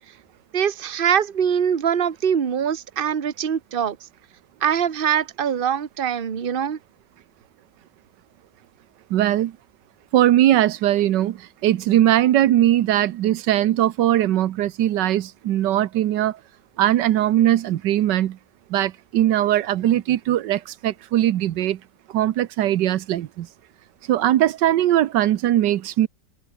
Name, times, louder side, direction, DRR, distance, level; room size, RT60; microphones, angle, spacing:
voice 1, 0.5-4.0 4.6-6.8, right 8 dB, 35° right, 1.2 m, -23 dB
voice 2, 9.1-9.6 10.1-16.4 16.8-18.4 18.7-21.8 22.1-23.5 24.1-26.1, right 12 dB, 90° right, 1.5 m, -20 dB
omnidirectional pair, 1.8 m